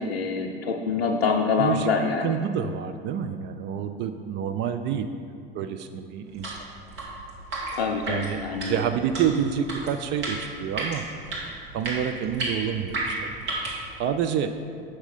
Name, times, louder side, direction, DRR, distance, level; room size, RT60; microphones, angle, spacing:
voice 1, 0.0-2.4 7.7-8.8, left 4 dB, 85° left, 0 dB, 0.5 m, -25 dB
voice 2, 1.6-1.9 2.2-5.1 5.5-6.6 8.1-8.4 8.7-11.1 11.7-13.3 14.0-14.5, right 8 dB, 40° right, 8 dB, 0.4 m, -28 dB
sound 1, 6.3-13.9, right 2 dB, 65° right, 1.9 m, -33 dB
7.4 x 5.8 x 4.1 m, 2.4 s
figure-of-eight pair, 65°, 30 cm